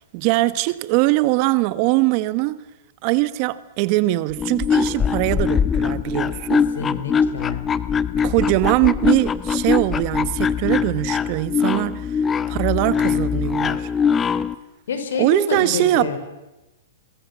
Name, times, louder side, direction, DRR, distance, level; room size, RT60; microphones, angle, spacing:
voice 1, 0.0-2.6 3.0-6.7 8.2-12.2 12.5-13.9 15.2-16.2, right 18 dB, 45° right, 1.2 m, -21 dB
sound 1, 4.3-14.5, left 7 dB, 20° left, 0.9 m, -22 dB
voice 2, 6.5-7.6 14.9-16.2, left 6 dB, 75° left, 5.1 m, -27 dB
26.5 x 23.5 x 7.3 m
hypercardioid pair, 125°, 0 cm